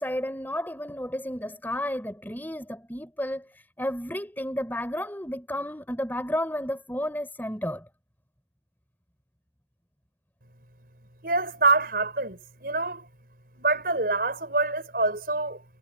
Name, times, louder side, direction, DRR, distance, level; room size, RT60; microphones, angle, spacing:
voice 1, 0.0-7.8, left 1 dB, 10° left, 4.4 m, -32 dB
voice 2, 11.2-13.1 13.5-15.6, right 3 dB, 55° right, 6.4 m, -26 dB
head